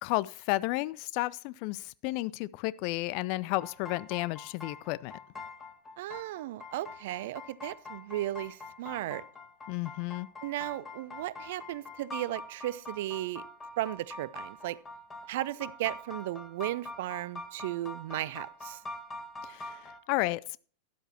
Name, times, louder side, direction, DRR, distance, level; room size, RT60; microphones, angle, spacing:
voice 1, 0.0-5.2 9.7-10.3 19.4-20.6, left 19 dB, 45° left, 0.4 m, -32 dB
sound 1, 3.6-20.0, left 2 dB, 15° left, 1.8 m, -44 dB
voice 2, 6.0-9.2 10.4-13.4 13.8-14.8 15.3-18.8, right 15 dB, 55° right, 0.5 m, -35 dB
12.5 x 11.0 x 2.9 m
figure-of-eight pair, 90°, 0 cm